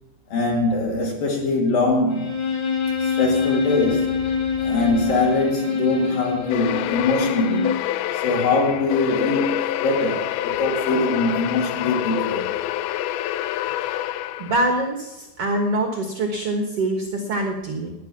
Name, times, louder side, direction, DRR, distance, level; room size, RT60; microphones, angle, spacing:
voice 1, 0.3-2.4 3.0-4.3 4.6-7.8 8.2-12.5, left 2 dB, 55° left, 3.6 m, -22 dB
Bowed string instrument, 2.1-7.9, left 6 dB, 35° left, 2.0 m, -25 dB
sound 1, 6.5-14.8, left 13 dB, 90° left, 2.1 m, -27 dB
voice 2, 14.4-17.9, right 1 dB, 80° right, 1.3 m, -24 dB
13.5 x 10.5 x 5.9 m
omnidirectional pair, 5.0 m